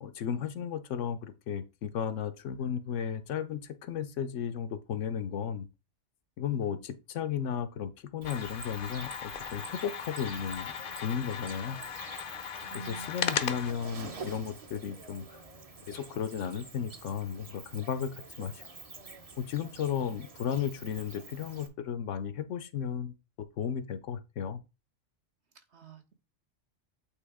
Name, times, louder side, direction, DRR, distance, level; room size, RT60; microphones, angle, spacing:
voice 1, 0.0-5.7 6.4-11.8 12.9-15.4 15.9-18.1 18.4-18.6 19.5-24.6, left 8 dB, 80° left, 1.1 m, -34 dB
voice 2, 6.5-6.8 12.6-13.5 14.0-14.3 25.5-26.1, right 4 dB, 60° right, 1.4 m, -49 dB
sound 1, 8.2-13.7, left 8 dB, 55° left, 0.7 m, -37 dB
Cricket, 8.2-21.7, right 3 dB, 35° right, 0.8 m, -47 dB
8.5 x 3.1 x 4.8 m
omnidirectional pair, 1.2 m